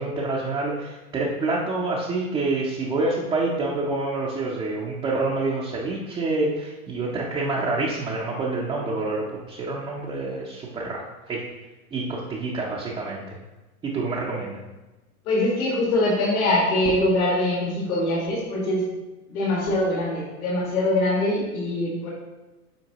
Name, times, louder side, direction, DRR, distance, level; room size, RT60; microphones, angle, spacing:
voice 1, 0.0-11.4 11.9-13.4 13.8-14.6, right 3 dB, 10° right, -4 dB, 0.4 m, -27 dB
voice 2, 15.3-18.8 19.3-22.1, left 1 dB, 75° left, -4 dB, 1.8 m, -23 dB
7.9 x 4.4 x 2.8 m, 1.1 s
hypercardioid pair, 115°, 44 cm